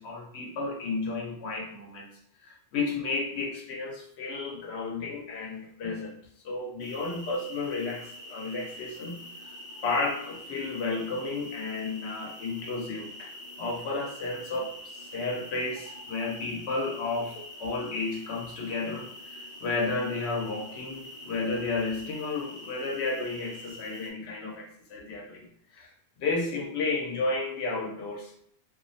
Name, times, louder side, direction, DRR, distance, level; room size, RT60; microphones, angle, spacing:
voice 1, 0.0-2.1 2.4-6.1 6.4-9.2 9.8-13.3 13.6-25.9 26.2-28.3, left 3 dB, 85° left, 0 dB, 0.9 m, -32 dB
sound 1, 6.8-24.1, left 1 dB, 60° left, 0.8 m, -45 dB
2.4 x 2.0 x 2.5 m, 0.67 s
omnidirectional pair, 1.1 m